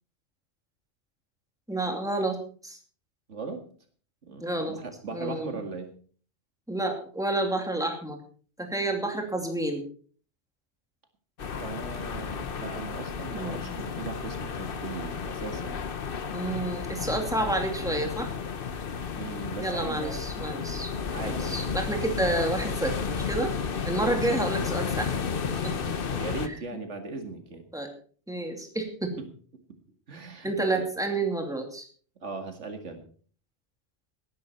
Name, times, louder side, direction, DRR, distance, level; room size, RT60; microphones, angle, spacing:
voice 1, 1.7-2.8 4.4-4.8 5.1-5.6 6.7-8.2 8.6-9.8 13.3-13.7 16.3-18.3 19.6-20.9 21.2-23.5 23.8-25.1 25.6-25.9 27.7-27.9 28.3-29.1 30.4-31.9, right 2 dB, 5° right, 3 dB, 2.6 m, -29 dB
voice 2, 3.3-3.7 4.2-5.9 11.6-15.8 19.2-20.2 21.1-21.8 22.1-22.2 24.0-24.4 26.1-27.7 29.7-29.8 30.1-30.8 32.2-33.0, right 4 dB, 90° right, 6 dB, 2.3 m, -38 dB
sound 1, 11.4-26.5, left 6 dB, 55° left, 1.1 m, -32 dB
18.0 x 10.5 x 4.3 m, 0.44 s
omnidirectional pair, 1.2 m